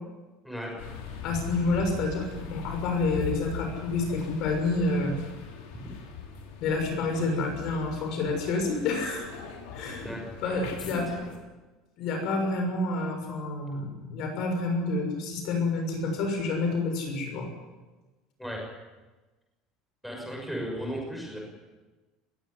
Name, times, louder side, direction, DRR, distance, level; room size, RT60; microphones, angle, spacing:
voice 1, 0.4-0.9 10.0-10.7 18.4-18.6 20.0-21.4, equal, ahead, -1 dB, 6.2 m, -36 dB
sound 1, 0.8-11.4, left 6 dB, 85° left, 6.2 m, -40 dB
voice 2, 1.2-5.2 6.6-9.3 9.7-10.1 10.4-11.1 12.0-17.5, left 3 dB, 45° left, 4 dB, 6.4 m, -28 dB
21.5 x 17.5 x 10.0 m, 1.2 s
cardioid pair, 175°, 0 cm